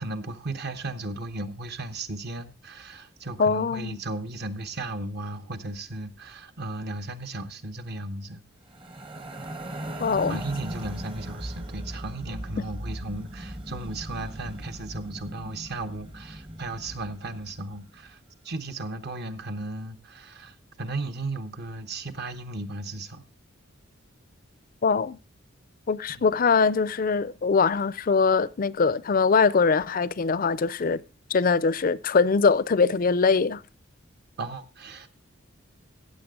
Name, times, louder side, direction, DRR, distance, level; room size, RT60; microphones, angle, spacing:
voice 1, 0.0-8.4 10.3-18.2 18.4-23.2 26.1-26.3 34.4-35.1, right 2 dB, 50° right, 1.0 m, -35 dB
voice 2, 3.4-4.0 10.0-10.4 24.8-25.2 25.9-31.0 31.3-33.6, left 5 dB, 40° left, 0.4 m, -22 dB
sound 1, 8.7-18.0, right 1 dB, 25° right, 0.9 m, -38 dB
15.0 x 7.6 x 3.7 m
head